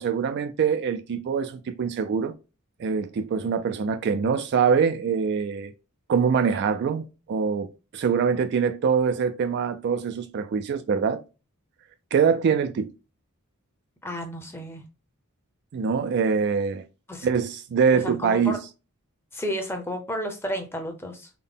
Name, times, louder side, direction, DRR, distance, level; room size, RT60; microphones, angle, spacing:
voice 1, 0.0-2.3 2.8-5.7 6.1-11.2 12.1-12.9 15.7-16.8 17.2-18.6, right 6 dB, 50° right, 0.3 m, -24 dB
voice 2, 14.0-14.8 17.1-17.3 17.9-18.6 19.3-21.3, equal, 10° left, 0.7 m, -32 dB
3.7 x 2.1 x 3.7 m
head